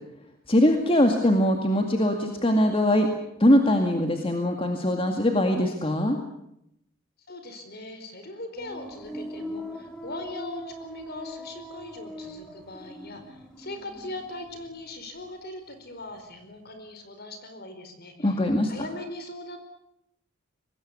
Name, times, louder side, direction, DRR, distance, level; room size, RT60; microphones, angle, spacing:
voice 1, 0.5-3.1 3.4-6.2 18.2-18.7, left 1 dB, 25° left, 4 dB, 2.2 m, -22 dB
voice 2, 7.3-19.6, left 2 dB, 50° left, 8 dB, 4.6 m, -40 dB
sound 1, 8.6-15.4 15.7-16.4, left 1 dB, 5° left, 3.3 m, -41 dB
24.5 x 20.0 x 8.3 m, 0.78 s
head